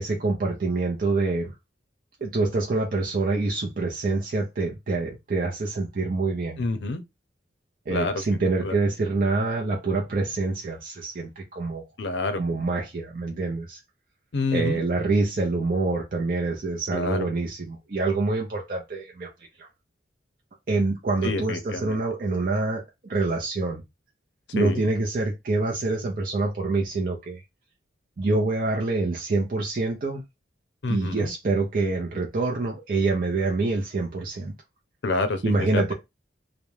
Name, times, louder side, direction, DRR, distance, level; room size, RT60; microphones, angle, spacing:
voice 1, 0.0-1.5 2.2-6.6 7.9-11.8 12.4-13.8 14.5-19.3 19.6-19.7 20.7-23.8 24.5-27.4 28.2-30.2 30.9-34.5 35.4-35.9, right 3 dB, 45° right, 0.5 m, -26 dB
voice 2, 6.6-7.0 7.9-8.2 8.6-8.8 12.0-12.4 14.3-14.8 16.9-17.3 21.2-22.0 24.6-24.8 30.8-31.3 35.0-35.4 35.7-35.9, left 3 dB, 70° left, 0.5 m, -27 dB
2.4 x 2.1 x 3.0 m
head